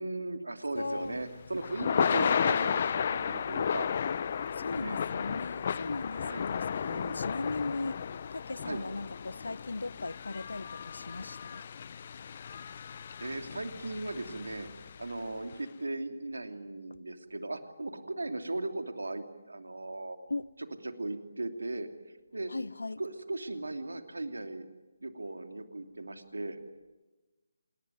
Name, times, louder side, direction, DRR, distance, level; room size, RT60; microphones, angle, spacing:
voice 1, 0.0-3.9 4.8-5.0 6.1-6.4 6.8-7.2 8.7-8.8 13.2-14.7 15.0-20.2 20.8-21.9 22.3-22.5 23.0-24.6 25.0-26.6, right 2 dB, 80° right, 3.0 m, -37 dB
voice 2, 0.7-1.2 4.5-11.6 20.3-20.5 22.5-23.0, left 3 dB, 75° left, 0.8 m, -38 dB
Thunder / Rain, 0.8-15.1, left 7 dB, 40° left, 0.8 m, -33 dB
27.5 x 21.0 x 9.5 m
figure-of-eight pair, 150°, 0 cm